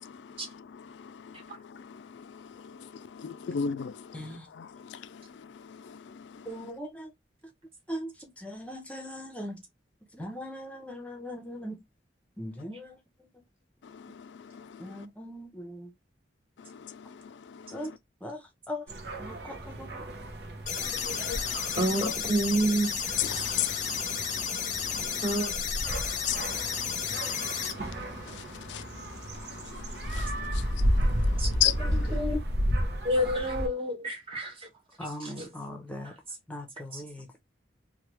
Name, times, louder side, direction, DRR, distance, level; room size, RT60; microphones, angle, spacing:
voice 1, 3.2-3.9 21.2-21.4 21.8-22.1 23.2-23.7 26.3-26.4 28.7-28.8 31.6-31.7, left 10 dB, 85° left, 0.4 m, -29 dB
voice 2, 4.1-4.5 6.5-7.1 7.9-9.6 10.1-11.8 12.4-13.0 14.8-15.9 17.7-17.9 18.2-18.4 18.7-18.8 19.2-20.0 35.0-36.1 36.5-37.3, equal, 10° left, 0.7 m, -39 dB
sound 1, 18.9-33.7, equal, 65° right, 0.7 m, -33 dB
sound 2, 20.7-27.7, left 7 dB, 45° left, 0.6 m, -32 dB
voice 3, 21.8-22.9 25.2-25.5 31.4-32.4 33.0-34.5 35.2-35.5, right 1 dB, 30° right, 1.2 m, -28 dB
3.2 x 2.3 x 3.0 m
head